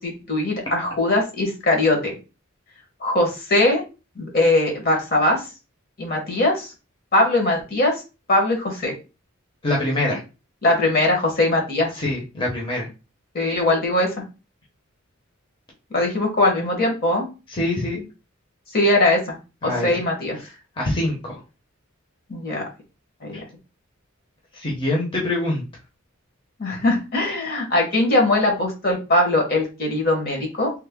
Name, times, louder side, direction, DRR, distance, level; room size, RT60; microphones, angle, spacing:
voice 1, 0.0-2.1 3.0-3.8 4.2-5.4 6.0-6.7 7.1-7.9 8.3-8.9 10.6-11.9 13.3-14.1 15.9-17.3 18.7-19.2 19.6-20.4 22.3-22.6 23.3-23.4 26.6-30.7, left 2 dB, 50° left, 1 dB, 1.1 m, -20 dB
voice 2, 9.6-10.2 11.9-12.9 17.5-18.0 19.6-20.0 20.4-20.5 20.8-21.4 23.3-23.4 24.5-25.6, left 1 dB, 25° left, -3 dB, 0.8 m, -24 dB
3.3 x 2.2 x 3.5 m, 0.30 s
head